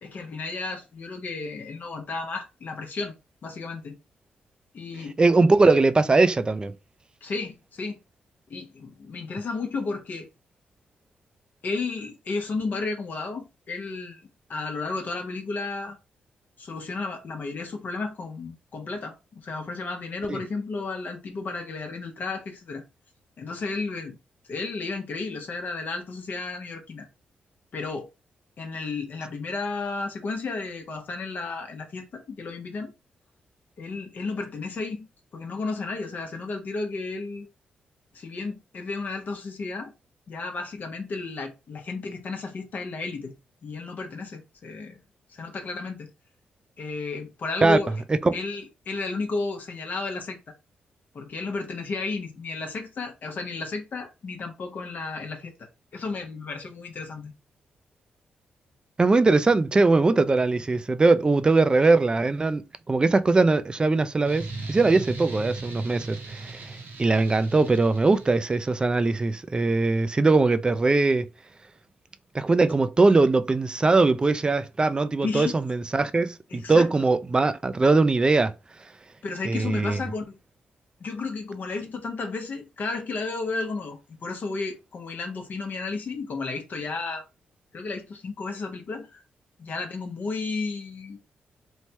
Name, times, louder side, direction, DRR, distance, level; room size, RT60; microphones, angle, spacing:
voice 1, 0.0-3.1 3.4-4.0 4.7-5.2 7.2-8.0 8.5-10.3 11.6-16.0 16.6-22.8 23.4-24.2 24.5-27.1 27.7-28.1 28.6-32.9 33.8-35.1 35.3-37.5 38.1-39.9 40.3-43.3 43.6-45.0 45.3-46.1 46.8-47.9 48.3-50.4 51.1-55.5 55.9-57.3 75.2-75.6 76.5-76.9 79.2-80.4 81.0-87.2 87.7-89.2 89.6-91.2, left 3 dB, 55° left, 0.7 m, -33 dB
voice 2, 5.2-6.7 20.3-20.4 47.6-47.8 48.2-48.3 59.0-71.3 72.3-78.5 79.5-80.0, right 3 dB, 25° right, 0.3 m, -21 dB
sound 1, 64.2-68.7, right 3 dB, 70° right, 0.9 m, -38 dB
3.1 x 2.1 x 2.8 m
cardioid pair, 80°, 3 cm